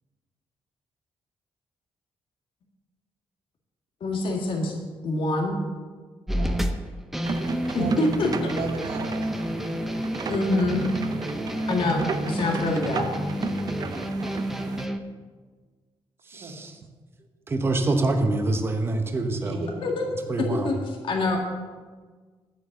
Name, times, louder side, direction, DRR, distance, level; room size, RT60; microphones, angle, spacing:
voice 1, 4.0-5.6 7.7-8.5 10.0-10.9 11.7-13.1 19.8-20.1 20.4-21.4, left 2 dB, 60° left, 0 dB, 1.9 m, -26 dB
sound 1, 6.3-15.0, equal, 5° right, 0.7 m, -30 dB
sound 2, 7.2-14.9, right 6 dB, 40° right, 0.6 m, -34 dB
voice 2, 7.5-8.0 8.4-9.2 11.2-11.4 16.3-16.6 19.3-19.9, right 4 dB, 75° right, 0 dB, 2.5 m, -36 dB
voice 3, 16.3-16.7 17.5-19.6 20.3-20.7, right 2 dB, 25° right, 5 dB, 1.0 m, -25 dB
10.5 x 8.2 x 7.8 m, 1.4 s
wide cardioid pair, 165°, 10 cm